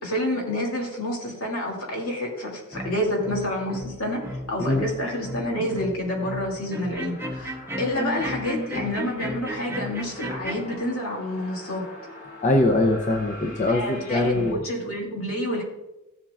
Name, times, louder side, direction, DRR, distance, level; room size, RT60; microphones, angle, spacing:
voice 1, 0.0-11.9 13.7-15.6, left 1 dB, 70° left, -1 dB, 2.5 m, -28 dB
sound 1, 1.7-14.5, left 1 dB, 50° left, 3.3 m, -46 dB
sound 2, 2.7-10.8, equal, 10° right, 0.8 m, -34 dB
voice 2, 12.4-14.6, left 2 dB, 35° left, 2 dB, 0.6 m, -22 dB
15.0 x 7.3 x 2.4 m, 0.99 s
head